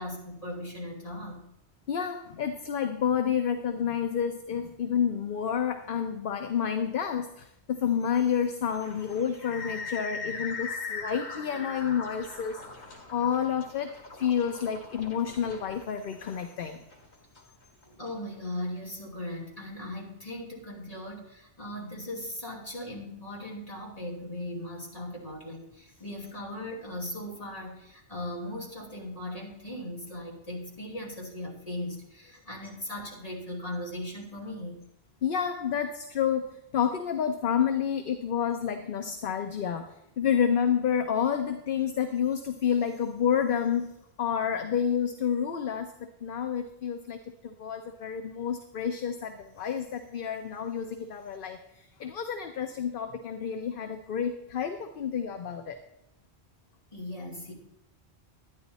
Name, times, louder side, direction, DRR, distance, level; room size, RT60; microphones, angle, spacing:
voice 1, 0.0-1.4 17.8-34.8 56.9-57.5, left 1 dB, 35° left, -3 dB, 2.8 m, -38 dB
voice 2, 1.9-12.6 13.1-13.9 14.2-16.8 35.2-39.9 40.2-43.9 44.2-55.8, left 8 dB, 60° left, 6 dB, 0.9 m, -29 dB
sound 1, 8.8-18.1, left 4 dB, 85° left, 2.1 m, -40 dB
12.0 x 9.8 x 4.1 m, 0.85 s
omnidirectional pair, 1.1 m